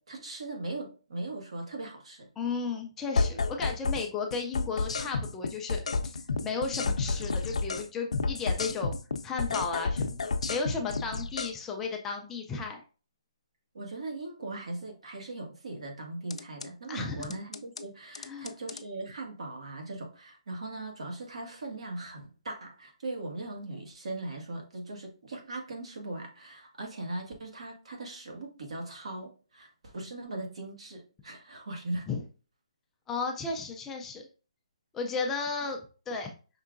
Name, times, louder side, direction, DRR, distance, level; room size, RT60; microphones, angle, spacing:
voice 1, 0.0-2.3 13.7-32.1, right 2 dB, 65° right, 2 dB, 1.6 m, -39 dB
voice 2, 2.4-9.0 9.2-10.2 10.5-12.8 16.9-17.3 18.2-18.5 32.1-32.2 33.1-34.3 34.9-35.8 36.1-36.3, left 4 dB, 10° left, 2 dB, 0.3 m, -34 dB
sound 1, 3.2-4.1 4.3-7.9 8.1-11.5 16.3-16.7 17.2-17.8 18.1-18.8, left 4 dB, 85° left, 0.5 m, -30 dB
5.5 x 3.6 x 2.5 m, 0.36 s
hypercardioid pair, 170°, 3 cm